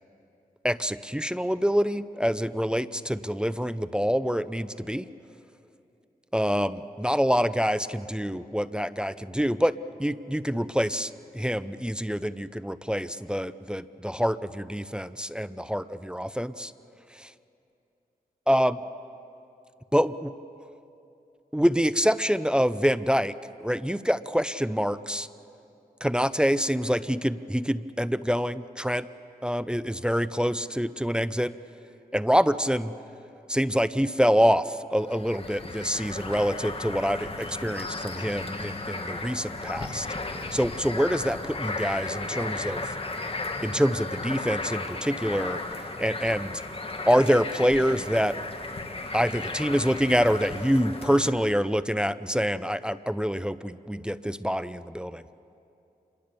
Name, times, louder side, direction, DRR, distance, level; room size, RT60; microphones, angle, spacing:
voice 1, 0.6-5.0 6.3-9.7 10.0-16.7 17.2-17.3 18.5-18.8 19.9-20.3 21.5-23.3 23.6-25.3 26.0-29.1 29.4-31.5 32.1-32.9 33.5-40.1 40.5-42.8 43.6-45.6 46.0-46.5 47.1-48.3 49.1-55.2, equal, 5° right, 14 dB, 0.6 m, -26 dB
sound 1, 35.0-51.3, left 3 dB, 35° left, 2.0 m, -35 dB
27.0 x 22.5 x 6.9 m, 2.7 s
cardioid pair, 60°, 16 cm